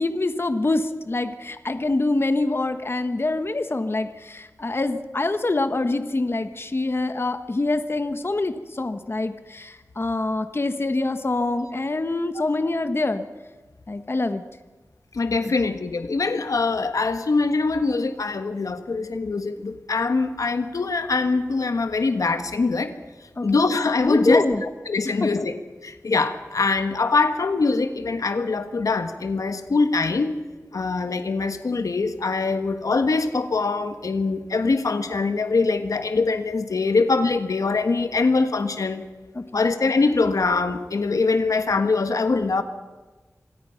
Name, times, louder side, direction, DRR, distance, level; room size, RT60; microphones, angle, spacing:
voice 1, 0.0-13.2 13.9-14.4 15.4-15.5 23.4-23.6 24.0-24.6 25.2-25.5 39.3-39.6, left 2 dB, 45° left, 10 dB, 1.3 m, -25 dB
voice 2, 15.1-23.0 23.4-24.4 24.9-25.5 25.8-30.3 30.7-39.0 39.5-42.6, left 3 dB, 85° left, 9 dB, 1.4 m, -23 dB
26.0 x 17.5 x 5.8 m, 1.2 s
wide cardioid pair, 65°, 6 cm